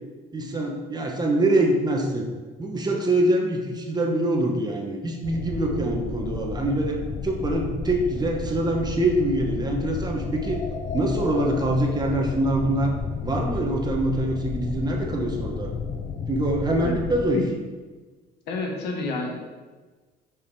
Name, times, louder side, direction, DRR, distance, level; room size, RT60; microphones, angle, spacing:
voice 1, 0.3-2.3 2.6-7.0 7.2-10.6 10.9-12.9 13.2-15.7 16.3-17.4, right 1 dB, 25° right, 1 dB, 1.1 m, -24 dB
sound 1, 5.2-17.3, left 5 dB, 45° left, 0.6 m, -32 dB
voice 2, 18.5-19.3, left 3 dB, 80° left, 1 dB, 1.5 m, -29 dB
5.6 x 4.9 x 4.8 m, 1.3 s
cardioid pair, 110°, 17 cm